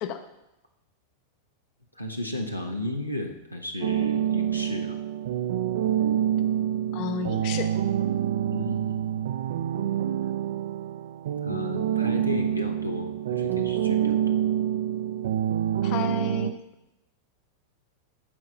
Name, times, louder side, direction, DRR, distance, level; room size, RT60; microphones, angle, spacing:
voice 1, 1.9-5.0 8.5-9.2 11.4-14.5, left 1 dB, 90° left, 3 dB, 1.1 m, -34 dB
sound 1, 3.8-16.5, right 10 dB, 55° right, 0.5 m, -27 dB
voice 2, 6.9-7.7 15.8-16.6, left 8 dB, 45° left, 8 dB, 0.7 m, -32 dB
13.5 x 4.8 x 5.7 m, 0.92 s
figure-of-eight pair, 90°, 0 cm